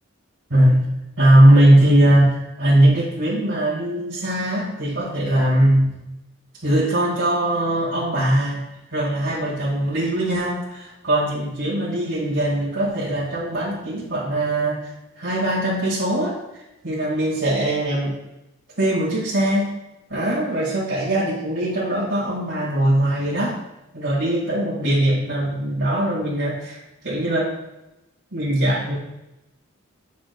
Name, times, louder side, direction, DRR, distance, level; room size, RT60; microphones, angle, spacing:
voice 1, 0.5-0.8 1.2-6.0 6.6-8.6 8.9-14.9 15.2-18.1 18.8-19.7 20.1-23.6 23.9-27.5 28.3-29.0, right 1 dB, 75° right, -8 dB, 1.7 m, -20 dB
8.8 x 6.0 x 2.2 m, 0.93 s
head